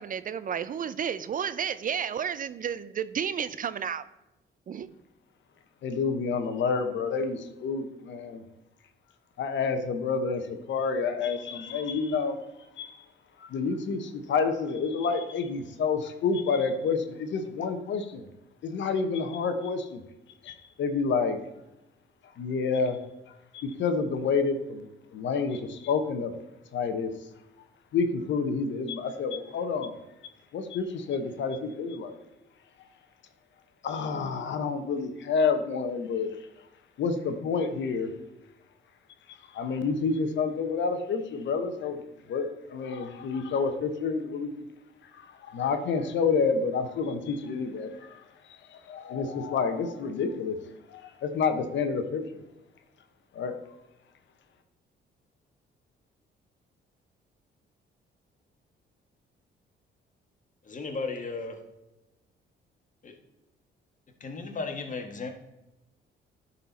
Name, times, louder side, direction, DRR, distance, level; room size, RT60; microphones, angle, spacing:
voice 1, 0.0-4.0 4.7-4.9, right 8 dB, 45° right, 14 dB, 0.4 m, -32 dB
voice 2, 5.8-8.4 9.4-12.4 12.8-13.0 13.4-18.2 18.6-20.0 20.4-21.4 22.4-23.0 23.5-24.8 25.1-26.3 26.7-27.1 27.9-29.9 30.5-32.1 33.8-36.3 37.0-38.1 39.5-42.0 42.3-44.6 45.2-48.2 48.9-50.6 50.9-52.2 53.3-53.6, left 5 dB, 70° left, 8 dB, 0.9 m, -29 dB
voice 3, 60.6-61.6 63.0-63.1 64.2-65.3, left 4 dB, 40° left, 4 dB, 1.5 m, -35 dB
10.5 x 4.3 x 4.1 m, 0.98 s
cardioid pair, 90°, 20 cm